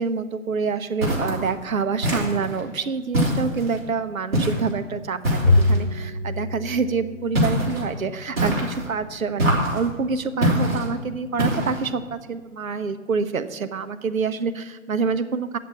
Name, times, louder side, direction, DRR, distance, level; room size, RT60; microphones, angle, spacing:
voice 1, 0.0-15.6, right 5 dB, 80° right, 10 dB, 1.0 m, -27 dB
sound 1, 1.0-1.5 2.0-2.6 3.1-3.8 4.3-4.7 5.2-5.8 7.3-7.8 8.4-8.9 9.4-9.9 10.4-10.9 11.4-11.9, equal, 45° right, 3.7 m, -23 dB
Bowed string instrument, 5.4-8.0, left 2 dB, 20° right, 0.6 m, -23 dB
8.6 x 7.4 x 8.5 m, 1.3 s
hypercardioid pair, 165°, 41 cm